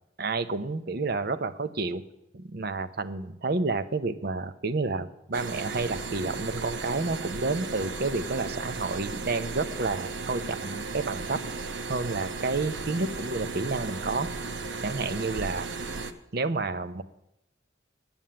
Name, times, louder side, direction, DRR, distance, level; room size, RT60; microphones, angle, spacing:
voice 1, 0.2-2.0 2.3-11.4 11.9-14.3 14.8-15.7 16.3-17.0, right 3 dB, 55° right, 11 dB, 0.7 m, -30 dB
sound 1, 5.3-16.1, right 4 dB, 80° right, 0.9 m, -35 dB
9.4 x 7.1 x 8.8 m, 0.82 s
head